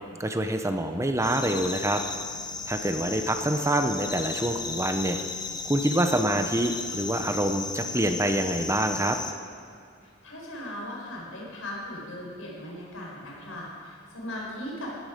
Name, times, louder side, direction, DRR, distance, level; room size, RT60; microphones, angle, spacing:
voice 1, 0.2-2.0 2.7-5.2 5.7-9.2, right 1 dB, 15° right, 6 dB, 0.7 m, -26 dB
sound 1, 1.2-9.3, left 4 dB, 20° left, 0.8 m, -35 dB
voice 2, 2.9-3.2 10.0-15.0, left 1 dB, 90° left, -3 dB, 4.8 m, -38 dB
16.0 x 14.0 x 5.2 m, 2.2 s
head